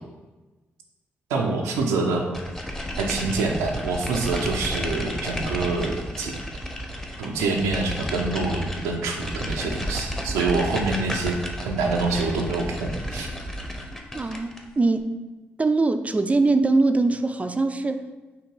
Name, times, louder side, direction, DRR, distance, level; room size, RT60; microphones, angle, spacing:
voice 1, 1.3-2.2 3.0-6.3 7.2-13.3, right 3 dB, 85° right, 0 dB, 0.5 m, -26 dB
sound 1, 2.3-14.7, equal, 10° left, 0.8 m, -32 dB
voice 2, 14.1-15.2 15.6-18.1, right 3 dB, 25° right, 9 dB, 0.4 m, -22 dB
3.9 x 2.8 x 4.5 m, 1.2 s
hypercardioid pair, 45°, 5 cm